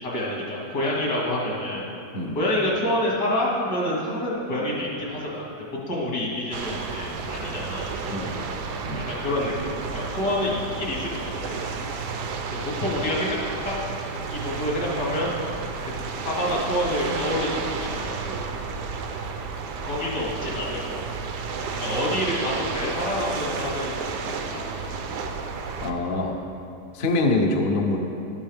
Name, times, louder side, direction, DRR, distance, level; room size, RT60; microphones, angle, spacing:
voice 1, 0.0-1.9 2.4-5.4 5.9-8.5 8.9-11.6 12.6-13.4 13.6-13.7 14.3-15.3 15.8-15.9 16.2-18.4 19.8-21.0 21.7-24.0 24.3-24.7, left 1 dB, 65° left, -4 dB, 2.7 m, -28 dB
sound 1, 6.5-25.9, right 4 dB, 70° right, 1.3 m, -32 dB
voice 2, 25.8-26.4 26.9-28.0, left 2 dB, 45° left, 2 dB, 0.8 m, -24 dB
12.5 x 11.5 x 3.4 m, 2.6 s
omnidirectional pair, 1.9 m